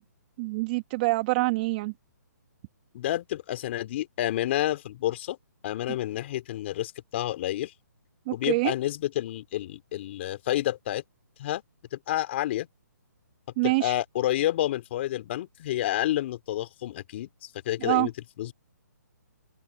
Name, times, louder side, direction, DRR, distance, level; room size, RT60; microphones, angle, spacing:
voice 1, 0.4-1.9 8.3-8.7 13.6-13.9 17.8-18.1, right 24 dB, 30° right, 1.8 m, -25 dB
voice 2, 2.9-5.4 5.6-7.7 8.3-11.0 11.4-11.6 11.9-12.7 13.6-18.1 18.4-18.5, left 14 dB, 40° left, 3.1 m, -29 dB
open air
hypercardioid pair, 150°, 10 cm